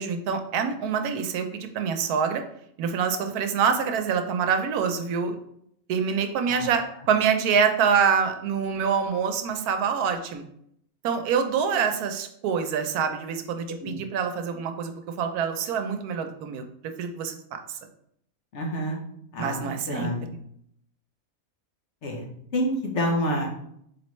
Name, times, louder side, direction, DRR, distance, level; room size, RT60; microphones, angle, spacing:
voice 1, 0.0-2.4 2.8-5.4 5.9-10.4 11.0-14.9 15.2-17.8 19.4-20.1, right 6 dB, 85° right, 7 dB, 1.1 m, -26 dB
voice 2, 18.5-19.0 19.3-20.3 22.0-22.3 22.5-23.5, equal, 55° left, -1 dB, 1.1 m, -28 dB
4.2 x 3.2 x 3.0 m, 0.71 s
omnidirectional pair, 1.6 m